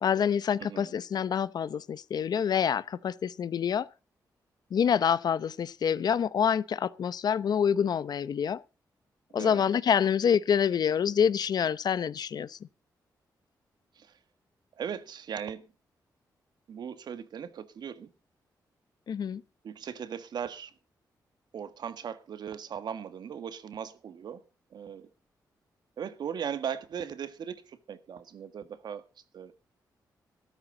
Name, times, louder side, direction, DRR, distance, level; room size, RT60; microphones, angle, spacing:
voice 1, 0.0-3.9 4.7-8.6 9.3-12.6 19.1-19.4, left 8 dB, 65° left, 0.8 m, -27 dB
voice 2, 0.6-0.9 9.3-9.6 13.9-14.1 14.8-15.7 16.7-18.1 19.6-20.7 21.5-24.4 24.7-25.1 26.0-29.0 29.3-29.5, right 8 dB, 75° right, 1.6 m, -38 dB
13.5 x 13.0 x 3.9 m
cardioid pair, 85°, 7 cm